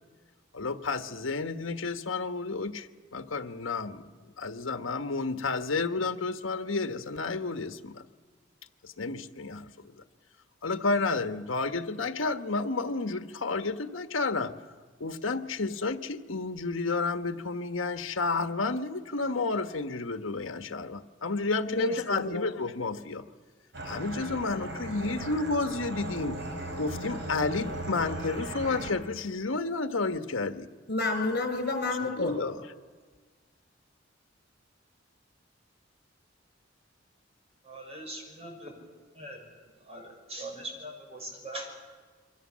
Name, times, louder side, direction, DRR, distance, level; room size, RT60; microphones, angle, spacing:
voice 1, 0.5-2.9 3.1-4.1 4.4-8.0 8.8-9.9 10.6-14.5 15.0-23.3 23.8-26.4 26.8-30.7 32.2-32.6, left 3 dB, 85° left, 9 dB, 1.3 m, -31 dB
voice 2, 21.7-22.4 30.9-32.4, left 2 dB, 55° left, 6 dB, 5.7 m, -30 dB
sound 1, 23.7-28.9, right 1 dB, 60° right, 4.7 m, -37 dB
voice 3, 37.6-38.7 39.1-39.4 39.8-41.7, right 1 dB, 30° right, 2 dB, 6.1 m, -41 dB
28.0 x 24.0 x 7.4 m, 1.5 s
head